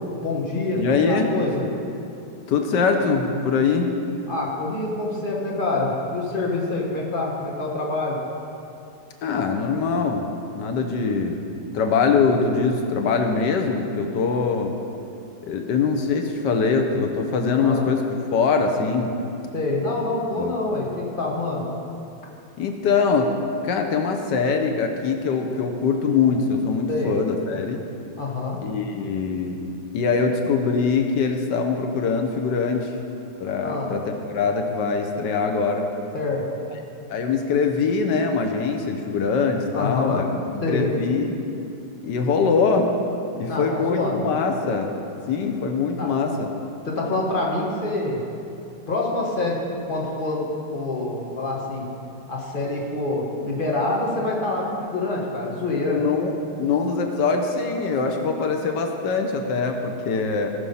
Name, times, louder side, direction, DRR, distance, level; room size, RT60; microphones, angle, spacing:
voice 1, 0.2-1.6 4.3-8.2 17.6-17.9 19.5-21.6 26.9-27.2 28.2-28.6 33.6-33.9 36.1-36.5 39.7-40.3 40.6-40.9 43.5-44.2 46.0-46.1 46.9-48.2 48.9-49.6 49.9-51.9 52.3-56.0, left 2 dB, 30° left, -3 dB, 1.9 m, -26 dB
voice 2, 0.7-1.3 2.5-3.9 9.2-10.3 10.5-11.4 11.7-14.7 15.5-18.0 18.3-19.1 20.4-20.5 22.6-23.3 23.6-27.8 28.6-29.6 29.9-32.9 33.4-35.9 37.1-40.2 40.7-41.4 42.0-42.9 43.4-44.9 45.3-46.5 55.9-56.3 56.6-60.5, left 5 dB, 90° left, 4 dB, 1.6 m, -23 dB
18.0 x 6.3 x 5.6 m, 2.7 s
omnidirectional pair, 1.8 m